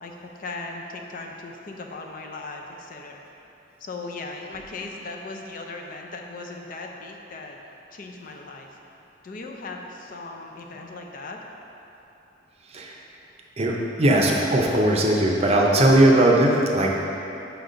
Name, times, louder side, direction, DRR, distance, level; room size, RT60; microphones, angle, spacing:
voice 1, 0.0-3.2 3.8-7.6 7.9-8.7 9.2-11.4, left 3 dB, 45° left, 1 dB, 0.5 m, -38 dB
voice 2, 12.7-13.0 13.6-16.9, right 1 dB, 35° right, -1 dB, 0.6 m, -19 dB
5.8 x 4.1 x 5.1 m, 3.0 s
head